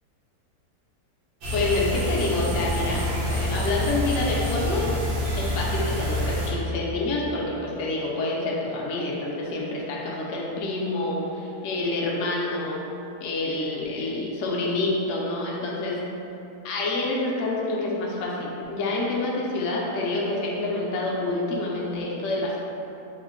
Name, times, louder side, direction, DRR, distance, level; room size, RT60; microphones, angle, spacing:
sound 1, 1.4-6.5, equal, 80° right, 1.3 m, -27 dB
voice 1, 1.5-4.9 5.4-12.8 13.2-16.0 16.6-22.6, left 2 dB, 65° left, -4 dB, 0.8 m, -27 dB
3.6 x 2.1 x 3.4 m, 2.9 s
omnidirectional pair, 1.7 m